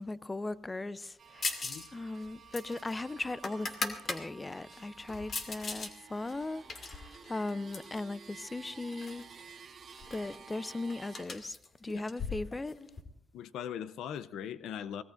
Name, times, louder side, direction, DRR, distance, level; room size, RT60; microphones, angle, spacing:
voice 1, 0.0-9.2 10.1-11.6 11.8-12.8, left 2 dB, 20° left, 0.6 m, -38 dB
sound 1, 1.2-11.2, right 6 dB, 45° right, 2.0 m, -53 dB
sound 2, 1.4-1.9 2.2-4.2 4.7-5.9 6.3-8.0 8.7-9.2 9.5-9.6 9.9-13.0, left 4 dB, 45° left, 2.4 m, -39 dB
voice 2, 13.3-15.0, left 9 dB, 80° left, 0.6 m, -40 dB
24.5 x 18.0 x 2.6 m
cardioid pair, 90°, 0 cm